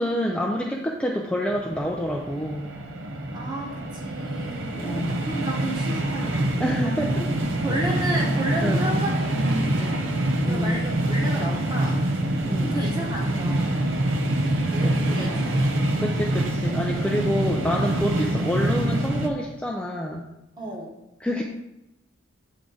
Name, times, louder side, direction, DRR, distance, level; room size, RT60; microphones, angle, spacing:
voice 1, 0.0-2.7 4.8-5.2 6.6-7.3 8.6-8.9 10.5-10.9 12.5-12.8 14.4-15.5 16.0-20.3 21.2-21.4, equal, 5° left, -1 dB, 0.4 m, -28 dB
sound 1, 1.5-19.3, right 1 dB, 70° right, 0.7 m, -25 dB
voice 2, 3.3-7.1 7.4-10.1 10.4-12.0 12.6-14.0 14.5-15.5 20.6-21.0, right 1 dB, 20° right, -1 dB, 1.1 m, -33 dB
8.3 x 3.6 x 3.9 m, 0.91 s
head